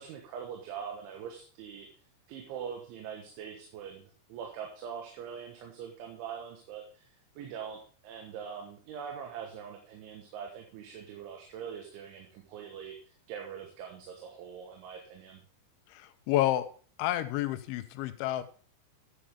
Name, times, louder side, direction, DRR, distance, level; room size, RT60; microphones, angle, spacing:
voice 1, 0.0-1.9 2.3-15.4, right 7 dB, 85° right, 1 dB, 3.9 m, -43 dB
voice 2, 15.9-16.7 17.0-18.4, left 14 dB, 85° left, 10 dB, 3.1 m, -30 dB
11.5 x 8.6 x 3.6 m, 0.41 s
omnidirectional pair, 5.3 m